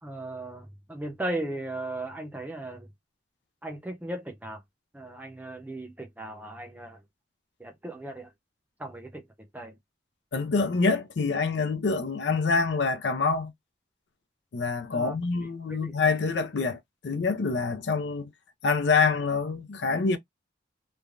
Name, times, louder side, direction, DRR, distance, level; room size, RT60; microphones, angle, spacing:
voice 1, 0.0-2.9 3.6-4.6 4.9-7.0 7.6-8.3 8.8-9.8 14.9-15.1 15.4-15.9, right 1 dB, 10° right, 0.7 m, -37 dB
voice 2, 10.3-13.5 14.5-18.3 18.6-20.2, left 4 dB, 70° left, 0.5 m, -26 dB
3.2 x 2.2 x 2.4 m
head